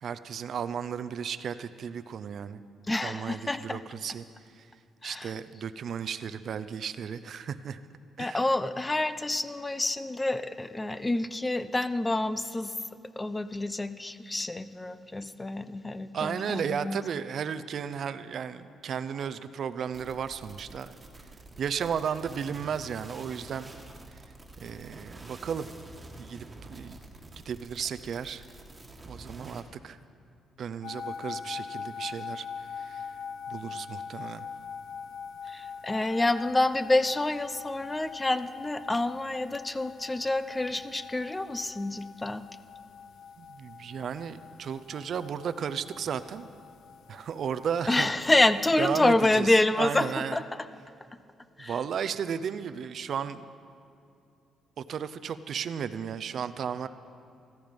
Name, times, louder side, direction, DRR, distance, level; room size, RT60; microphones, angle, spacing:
voice 1, 0.0-2.6 3.0-4.3 4.5-4.7 5.0-7.8 8.2-8.5 16.1-21.0 21.6-23.7 24.1-24.2 24.6-25.7 26.2-27.0 27.4-28.4 29.0-30.0 30.6-32.5 32.8-33.1 33.5-34.5 43.4-46.5 47.1-48.1 48.8-49.5 49.8-50.4 51.6-53.5 54.9-56.9, right 7 dB, 60° right, 12 dB, 0.6 m, -34 dB
voice 2, 2.9-3.8 5.0-5.3 8.2-12.7 13.2-17.0 35.5-42.4 47.9-50.5 51.6-51.8, left 2 dB, 15° left, 13 dB, 0.6 m, -27 dB
sound 1, 19.9-29.6, right 2 dB, 20° right, 1.7 m, -48 dB
sound 2, 30.8-49.1, left 6 dB, 75° left, 0.7 m, -43 dB
14.5 x 14.0 x 5.3 m, 2.6 s
cardioid pair, 90°, 0 cm